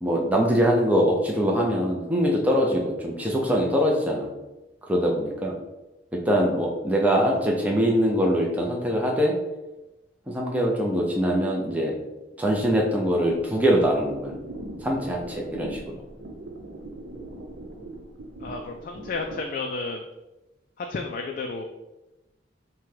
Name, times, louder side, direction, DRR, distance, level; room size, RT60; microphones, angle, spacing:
voice 1, 0.0-4.4 4.9-5.5 6.1-9.4 10.3-12.0 12.4-14.3 14.8-16.0, equal, 10° right, -2 dB, 0.6 m, -23 dB
sound 1, 13.2-19.4, right 1 dB, 85° right, 0.7 m, -40 dB
voice 2, 18.4-20.0 20.8-21.6, left 3 dB, 45° left, 2 dB, 0.3 m, -32 dB
5.9 x 2.3 x 3.3 m, 1.0 s
head